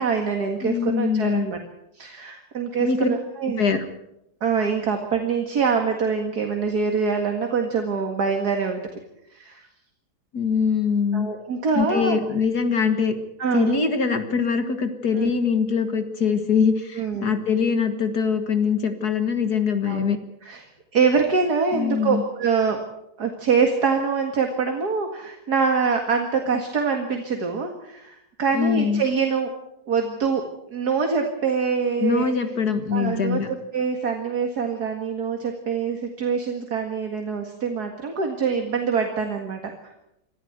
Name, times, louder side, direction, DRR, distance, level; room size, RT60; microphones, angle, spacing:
voice 1, 0.0-1.6 1.9-3.6 4.4-8.8 9.3-9.7 11.1-12.2 13.4-13.8 15.2-15.3 16.9-17.3 19.9-20.1 20.4-22.8 23.2-29.5 29.9-30.4 30.7-32.3 32.9-39.7, right 5 dB, 60° right, 4 dB, 2.5 m, -24 dB
voice 2, 0.6-1.5 2.8-3.1 3.6-3.8 10.3-11.3 11.7-13.1 13.5-20.2 21.7-22.2 28.5-29.0 32.0-33.5, left 6 dB, 60° left, 8 dB, 2.2 m, -23 dB
25.0 x 15.0 x 8.1 m, 0.82 s
omnidirectional pair, 1.9 m